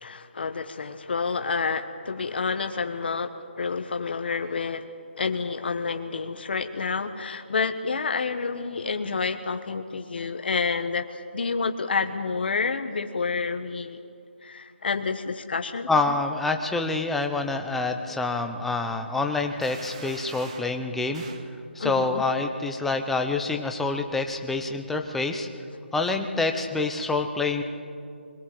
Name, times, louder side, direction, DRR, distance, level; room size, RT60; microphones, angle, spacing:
voice 1, 0.0-4.9 5.2-14.0 14.4-15.9 21.8-22.2, left 4 dB, 60° left, 7 dB, 1.2 m, -29 dB
voice 2, 15.9-21.2 21.7-25.5 25.9-27.6, left 3 dB, 5° left, 5 dB, 0.8 m, -27 dB
sound 1, 19.6-20.8 21.1-21.5, right 5 dB, 30° right, 1.6 m, -44 dB
22.0 x 21.5 x 7.8 m, 2.4 s
hypercardioid pair, 165°, 6 cm